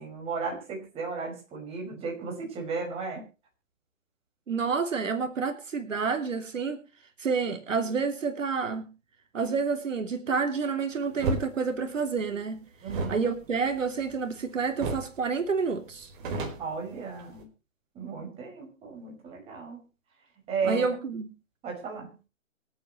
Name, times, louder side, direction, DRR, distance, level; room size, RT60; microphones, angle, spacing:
voice 1, 0.0-3.3 12.8-13.2 16.6-17.5 17.9-19.9 20.5-20.9 21.6-22.2, right 4 dB, 15° right, 0 dB, 5.7 m, -34 dB
voice 2, 4.5-6.8 7.2-8.9 9.3-12.6 13.1-16.1 20.6-21.3, right 5 dB, 70° right, 6 dB, 3.0 m, -29 dB
sound 1, 11.2-11.5 12.8-14.4 14.8-15.2 15.5-15.6 15.9-17.4, right 3 dB, 40° right, 4.6 m, -33 dB
26.0 x 8.9 x 3.1 m, 0.31 s
hypercardioid pair, 150°, 39 cm